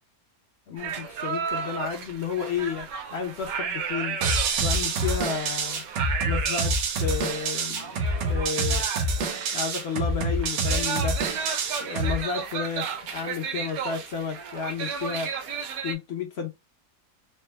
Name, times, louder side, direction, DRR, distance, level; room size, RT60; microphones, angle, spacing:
voice 1, 0.7-4.2 4.6-8.0 8.2-8.8 9.5-11.2 11.8-15.3 15.8-16.5, left 6 dB, 60° left, 0.7 m, -32 dB
sound 1, 0.8-15.9, right 6 dB, 65° right, 1.1 m, -34 dB
sound 2, 4.2-12.2, right 2 dB, 90° right, 1.4 m, -27 dB
4.3 x 2.0 x 3.2 m
omnidirectional pair, 1.7 m